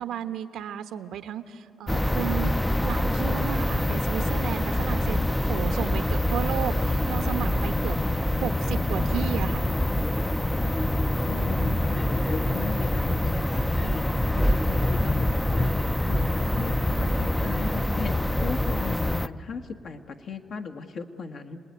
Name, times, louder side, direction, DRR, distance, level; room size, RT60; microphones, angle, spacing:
voice 1, 0.0-2.5 2.8-8.0 8.4-9.7, right 10 dB, 80° right, 9 dB, 1.1 m, -33 dB
sound 1, 1.9-19.3, left 1 dB, 10° left, 0.6 m, -25 dB
voice 2, 11.2-15.7 16.1-21.6, left 5 dB, 60° left, 4 dB, 1.6 m, -37 dB
28.0 x 20.0 x 9.6 m, 2.6 s
cardioid pair, 90°, 0 cm